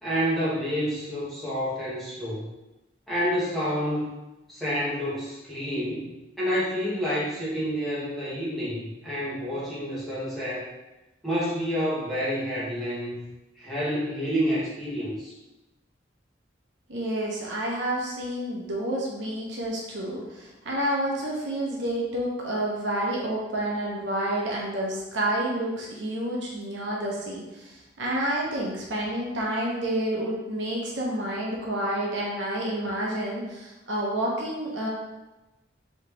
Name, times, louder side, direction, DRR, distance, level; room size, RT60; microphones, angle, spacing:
voice 1, 0.0-2.5 3.1-4.1 4.5-10.7 11.2-13.2 13.6-15.3, equal, ahead, -10 dB, 1.1 m, -29 dB
voice 2, 16.9-34.9, right 1 dB, 75° right, -3 dB, 0.8 m, -29 dB
3.2 x 2.9 x 3.1 m, 1.0 s
head